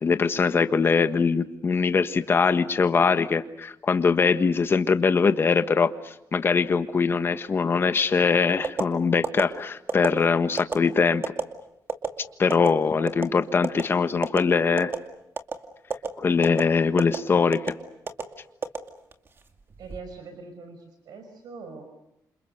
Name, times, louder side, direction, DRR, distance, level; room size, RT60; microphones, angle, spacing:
voice 1, 0.0-11.2 12.4-14.9 16.2-17.7, left 5 dB, 35° left, 9 dB, 1.5 m, -22 dB
sound 1, 8.6-8.9 9.2-9.4 9.9-10.1 10.6-10.7 11.2-11.4 11.9-12.1 12.5-12.7 13.1-13.3 13.6-13.8 14.2-14.4 14.8-15.0 15.4-15.6 15.9-16.1 16.4-16.6 17.0-17.2 17.5-17.7 18.1-18.2 18.6-19.3 19.7-20.0, right 5 dB, 35° right, 2.3 m, -27 dB
voice 2, 19.8-21.8, right 4 dB, 80° right, 7 dB, 5.5 m, -43 dB
29.0 x 27.5 x 6.6 m, 0.85 s
wide cardioid pair, 150°, 7 cm